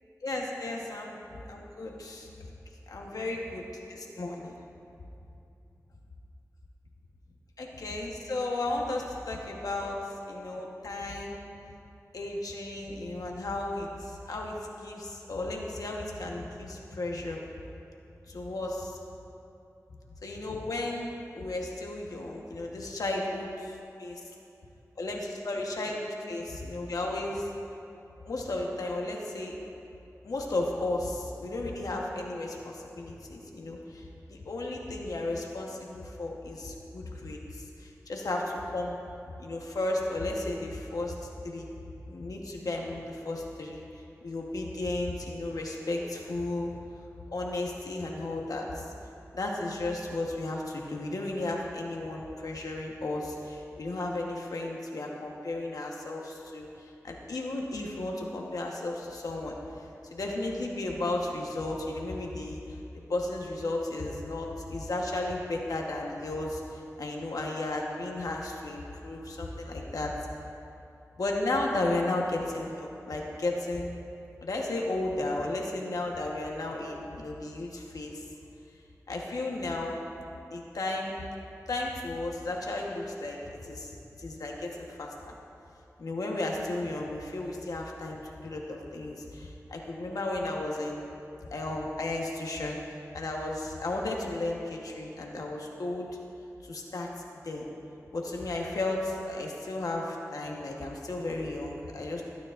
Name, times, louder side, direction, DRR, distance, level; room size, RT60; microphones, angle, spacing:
voice 1, 0.2-1.2 1.5-2.3 2.9-4.5 7.6-10.0 10.3-11.5 12.1-17.4 18.3-18.9 20.2-24.2 25.0-27.5 28.2-29.5 30.2-39.0 39.4-41.2 41.4-41.7 42.1-46.7 47.3-48.9 49.3-59.6 60.1-70.1 71.2-73.9 74.4-78.2 79.1-80.0 80.5-81.1 81.7-83.9 84.2-85.3 86.0-91.1 91.5-92.8 93.1-96.1 96.6-97.1 97.4-97.7 98.1-102.2, left 2 dB, 85° left, -1 dB, 1.2 m, -34 dB
22.0 x 9.5 x 2.6 m, 2.8 s
cardioid pair, 45°, 6 cm